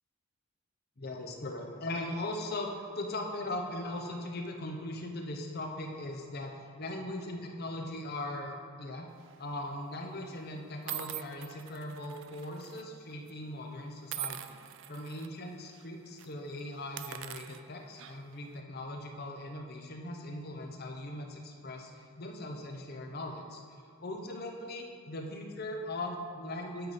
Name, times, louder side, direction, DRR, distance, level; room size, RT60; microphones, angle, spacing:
voice 1, 1.0-6.5 6.8-9.1 9.4-14.6 14.9-23.6 24.0-26.9, left 1 dB, 50° left, 2 dB, 0.9 m, -39 dB
sound 1, 9.2-9.5 10.2-10.3 10.9-12.8 13.1-13.3 14.1-15.3 15.7-15.9 16.2-16.3 16.8-18.4, right 14 dB, 60° right, 0.4 m, -43 dB
12.5 x 4.1 x 5.2 m, 2.3 s
head